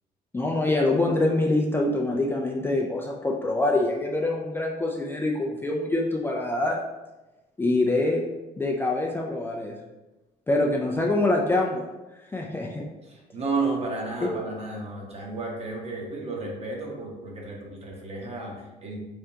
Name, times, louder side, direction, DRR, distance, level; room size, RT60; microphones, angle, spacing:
voice 1, 0.3-6.8 7.6-8.2 8.6-9.7 10.5-11.9 12.3-12.8 14.2-14.3, left 2 dB, 15° left, -2 dB, 0.4 m, -25 dB
voice 2, 13.0-19.0, right 3 dB, 35° right, -1 dB, 1.0 m, -32 dB
3.5 x 3.3 x 2.8 m, 1.1 s
cardioid pair, 110°, 17 cm